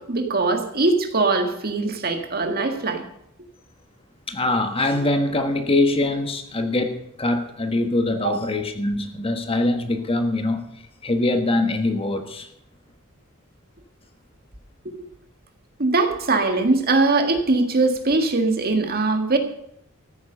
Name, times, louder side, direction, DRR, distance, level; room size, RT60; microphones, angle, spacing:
voice 1, 0.0-3.0 8.2-8.4 14.9-15.1 15.8-19.4, right 3 dB, 45° right, 5 dB, 1.9 m, -21 dB
voice 2, 4.3-10.6 11.0-12.5, left 2 dB, 25° left, 7 dB, 1.4 m, -23 dB
14.0 x 9.3 x 6.7 m, 0.74 s
head